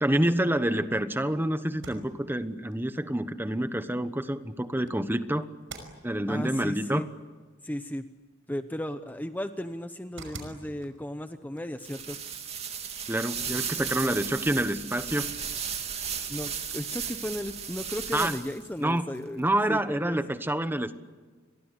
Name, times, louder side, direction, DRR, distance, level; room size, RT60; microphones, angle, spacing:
voice 1, 0.0-5.5 6.0-7.1 13.1-15.3 18.1-18.4 18.8-19.1 19.4-21.0, right 1 dB, 10° right, 11 dB, 1.2 m, -27 dB
sound 1, 1.7-13.3, right 3 dB, 75° right, 5.6 m, -51 dB
voice 2, 6.3-7.1 7.6-8.1 8.5-12.2 13.8-14.2 16.3-19.4 19.7-20.2, left 1 dB, 10° left, 9 dB, 0.8 m, -35 dB
sound 2, 11.8-18.7, right 7 dB, 35° right, 2.6 m, -35 dB
30.0 x 23.0 x 8.2 m, 1.4 s
head